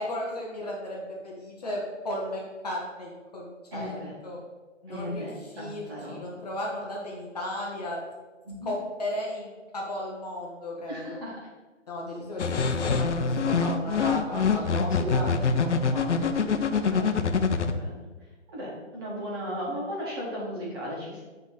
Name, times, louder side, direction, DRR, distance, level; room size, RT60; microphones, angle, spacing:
voice 1, 0.0-3.9 4.2-4.4 4.8-5.3 5.5-8.0 8.6-11.2 11.9-12.4 12.8-15.3 15.5-16.3, left 1 dB, 30° left, -2 dB, 1.1 m, -35 dB
voice 2, 3.7-4.1 4.9-5.3 5.6-6.4 8.5-8.8 10.9-11.4 15.0-15.1 16.9-17.3 17.7-18.1 18.5-21.2, equal, 20° right, -6 dB, 1.6 m, -36 dB
sound 1, 12.4-17.7, left 5 dB, 65° left, 0.7 m, -25 dB
8.2 x 3.5 x 5.1 m, 1.3 s
hypercardioid pair, 165°, 37 cm